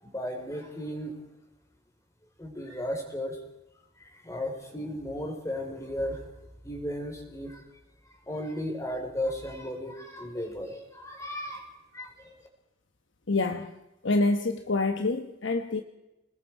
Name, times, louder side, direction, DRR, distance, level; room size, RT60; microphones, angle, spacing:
voice 1, 0.0-1.1 2.4-3.4 4.0-6.3 6.6-7.6 8.1-12.3, equal, 15° left, 2 dB, 3.9 m, -35 dB
voice 2, 13.3-13.7 14.0-15.8, left 2 dB, 65° left, 6 dB, 1.1 m, -26 dB
27.5 x 20.5 x 4.6 m, 0.96 s
head